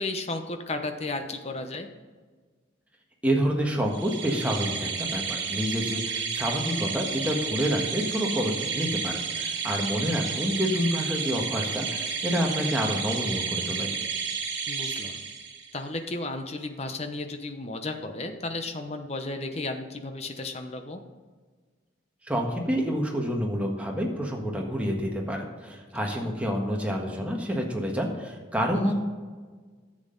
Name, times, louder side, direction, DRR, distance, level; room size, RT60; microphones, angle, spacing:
voice 1, 0.0-1.9 14.7-15.2 15.7-21.0 26.1-26.3 28.7-28.9, left 2 dB, 35° left, 6 dB, 0.9 m, -34 dB
voice 2, 3.2-13.9 22.2-28.9, equal, 5° right, -1 dB, 1.4 m, -28 dB
sound 1, 3.9-15.8, right 5 dB, 65° right, 1.4 m, -31 dB
11.0 x 7.7 x 3.9 m, 1.4 s
head